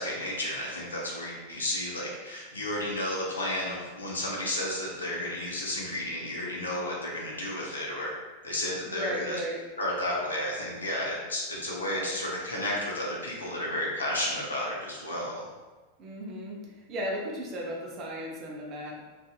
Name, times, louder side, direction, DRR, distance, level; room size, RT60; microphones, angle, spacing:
voice 1, 0.0-8.1 8.4-9.4 9.8-15.4, left 1 dB, 75° left, -4 dB, 0.6 m, -32 dB
voice 2, 8.9-9.6 11.9-12.1 16.0-16.6 16.9-19.0, equal, 35° right, -2 dB, 0.6 m, -35 dB
2.5 x 2.5 x 2.3 m, 1.3 s
figure-of-eight pair, 90°, 0 cm